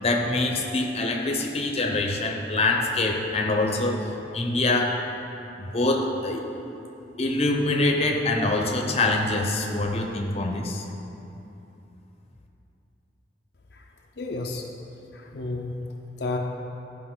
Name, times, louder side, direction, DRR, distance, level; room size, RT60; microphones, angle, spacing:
voice 1, 0.0-4.1 4.3-5.0 5.6-6.5 7.2-10.8, left 2 dB, 35° left, 1 dB, 0.8 m, -24 dB
voice 2, 14.2-14.7 15.1-15.8 16.2-16.4, left 3 dB, 70° left, 1 dB, 0.6 m, -31 dB
14.0 x 5.2 x 3.9 m, 2.9 s
head